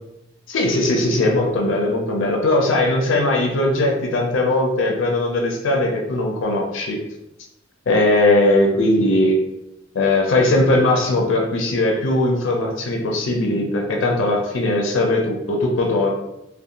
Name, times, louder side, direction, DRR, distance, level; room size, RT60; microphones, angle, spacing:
voice 1, 0.5-7.0 7.9-9.4 9.9-16.1, left 2 dB, 80° left, 1 dB, 0.4 m, -19 dB
2.5 x 2.1 x 2.7 m, 0.89 s
head